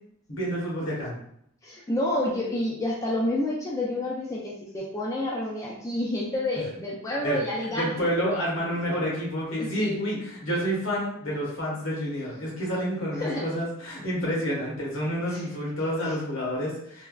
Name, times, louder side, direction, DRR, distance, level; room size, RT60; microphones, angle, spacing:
voice 1, 0.3-1.1 7.2-7.4 7.7-17.1, equal, 65° left, -4 dB, 1.1 m, -29 dB
voice 2, 1.6-8.0 9.6-10.0 13.2-13.4 15.3-15.4, left 1 dB, 15° left, -4 dB, 0.3 m, -29 dB
3.2 x 2.2 x 2.3 m, 0.71 s
head